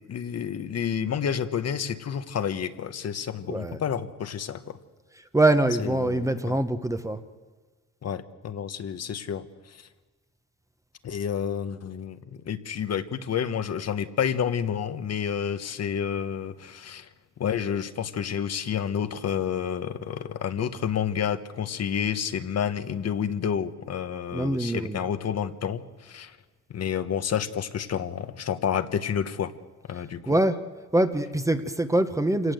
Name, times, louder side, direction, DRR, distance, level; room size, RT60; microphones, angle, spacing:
voice 1, 0.1-4.8 5.8-6.6 8.0-9.9 11.0-17.1 17.4-26.4 26.7-29.5 29.9-30.4, left 8 dB, 55° left, 10 dB, 1.1 m, -30 dB
voice 2, 5.3-7.2 24.3-25.1 30.3-30.6 30.9-32.5, right 1 dB, 10° right, 9 dB, 1.0 m, -24 dB
27.0 x 17.5 x 7.9 m, 1.3 s
cardioid pair, 130°, 31 cm